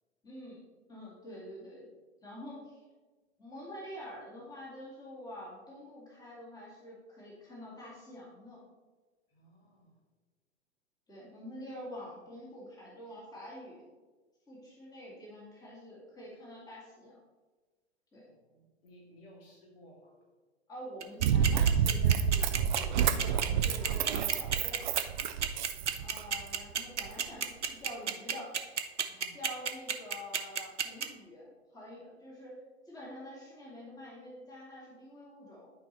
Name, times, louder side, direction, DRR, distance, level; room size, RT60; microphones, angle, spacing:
voice 1, 0.2-0.6 0.9-1.9 2.2-2.8 3.4-8.6 11.1-13.8 14.5-17.2 18.1-18.3 20.7-24.8 26.0-28.5 29.3-35.7, left 1 dB, 10° left, -5 dB, 2.0 m, -47 dB
voice 2, 9.3-9.9 18.3-20.1 25.7-26.2 29.1-29.3, equal, 55° left, -2 dB, 2.4 m, -58 dB
sound 1, 21.0-31.0, right 7 dB, 80° right, 0.8 m, -30 dB
Run, 21.2-26.5 27.1-27.2, right 8 dB, 45° right, 0.5 m, -28 dB
11.5 x 4.7 x 3.0 m, 1.3 s
figure-of-eight pair, 105°, 35 cm